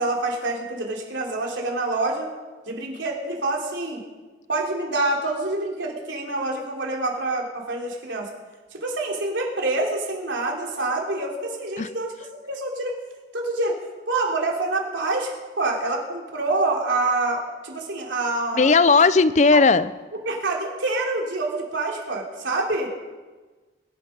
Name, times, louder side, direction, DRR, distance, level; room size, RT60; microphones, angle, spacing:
voice 1, 0.0-2.3 2.6-4.0 4.5-8.3 8.7-12.1 12.5-13.0 13.3-13.8 14.1-18.7 19.5-19.6 20.2-22.9, right 2 dB, 80° right, -1 dB, 3.4 m, -26 dB
voice 2, 18.5-19.9, left 4 dB, 40° left, 15 dB, 0.5 m, -16 dB
22.0 x 11.0 x 5.3 m, 1.3 s
head